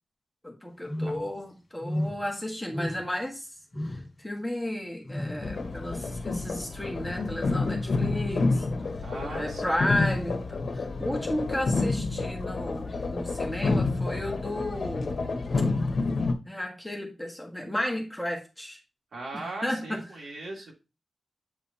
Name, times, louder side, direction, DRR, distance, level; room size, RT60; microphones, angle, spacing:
voice 1, 0.4-3.5 3.8-8.7 9.3-15.3 16.4-18.8 19.3-20.0, left 1 dB, 5° left, 1.6 m, -33 dB
sound 1, 0.9-1.4 1.8-2.3 2.7-3.2 3.7-4.1 5.0-5.5, left 1 dB, 30° left, 2.6 m, -33 dB
sound 2, 5.4-16.3, left 3 dB, 55° left, 1.3 m, -29 dB
voice 2, 9.0-10.0 19.1-20.7, right 2 dB, 80° right, 2.8 m, -39 dB
8.9 x 5.4 x 2.9 m
wide cardioid pair, 160°, 0 cm